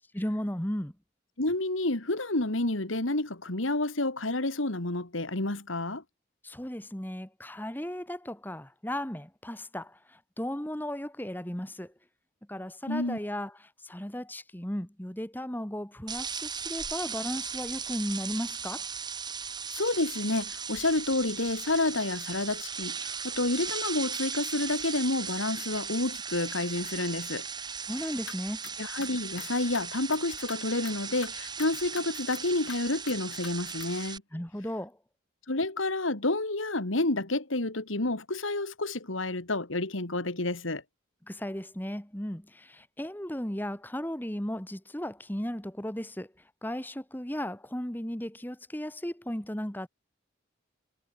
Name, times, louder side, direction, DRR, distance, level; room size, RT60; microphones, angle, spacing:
voice 1, 0.1-0.9 6.4-11.9 12.5-18.9 27.9-28.6 34.3-35.0 41.2-46.3 46.6-49.9, equal, 10° left, 1.5 m, -35 dB
voice 2, 1.4-6.0 12.9-13.2 19.7-27.4 28.8-34.2 35.5-40.8, left 2 dB, 90° left, 2.7 m, -29 dB
sound 1, 16.1-34.2, right 6 dB, 20° right, 3.9 m, -37 dB
sound 2, 28.2-28.4 28.6-28.7 29.0-29.8 30.1-30.2 30.5-30.6 30.8-31.0 31.2-31.3 31.6-31.7 32.0-32.1 32.3-32.8 33.1-33.2 33.4-33.5 33.8-33.9, left 8 dB, 70° left, 2.7 m, -43 dB
head